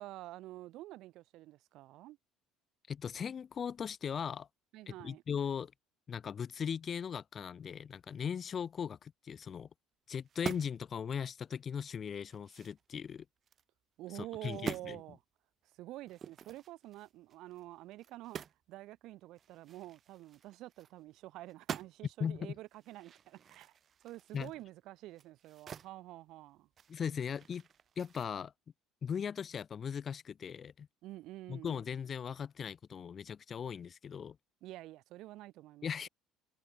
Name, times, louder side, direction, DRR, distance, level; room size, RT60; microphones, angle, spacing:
voice 1, 0.0-2.2 4.7-5.2 14.0-15.2 15.8-18.4 18.7-23.7 24.0-26.7 31.0-31.8 34.6-36.1, right 16 dB, 65° right, 1.1 m, -48 dB
voice 2, 2.9-4.5 4.9-5.7 6.1-9.7 10.1-13.2 14.1-15.0 22.2-22.5 24.3-24.5 26.9-27.6 28.0-28.5 29.0-30.9 31.5-34.4 35.8-36.1, left 7 dB, 35° left, 1.1 m, -38 dB
sound 1, 10.2-10.9 11.3-11.4 11.9-13.6 14.1-14.3 14.5-14.9 16.1-18.7 18.9-19.0 19.4-21.2 21.5-22.2 22.7-25.9 26.3-28.3, right 8 dB, 40° right, 0.7 m, -47 dB
supercardioid pair, 105°, 0 cm